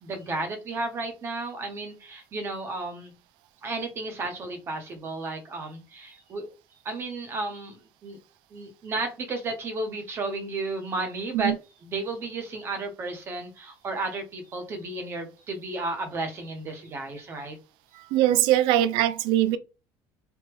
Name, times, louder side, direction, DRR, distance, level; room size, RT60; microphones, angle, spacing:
voice 1, 0.0-3.1 3.6-6.5 6.8-8.2 8.5-11.5 11.8-17.6, right 2 dB, 30° right, 0.8 m, -33 dB
voice 2, 17.9-19.6, right 13 dB, 85° right, 0.4 m, -22 dB
3.4 x 2.1 x 3.0 m
cardioid pair, 165°, 8 cm